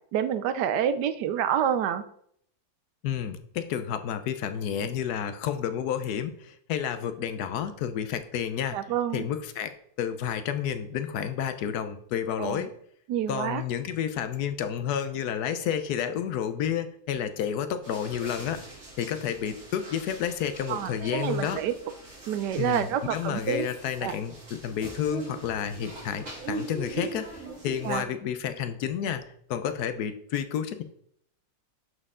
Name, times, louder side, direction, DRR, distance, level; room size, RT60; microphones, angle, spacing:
voice 1, 0.1-2.0 8.7-9.3 12.4-12.6 13.1-13.6 20.7-21.7 22.3-23.7 24.0-24.2 27.8-28.0, right 9 dB, 75° right, 12 dB, 1.1 m, -28 dB
voice 2, 3.0-8.8 9.1-12.7 13.3-18.6 19.0-21.6 22.6-29.2 29.5-30.8, left 9 dB, 70° left, 10 dB, 1.0 m, -30 dB
sound 1, 17.8-28.0, right 3 dB, 40° right, 2.9 m, -41 dB
11.0 x 4.4 x 3.7 m, 0.69 s
omnidirectional pair, 2.0 m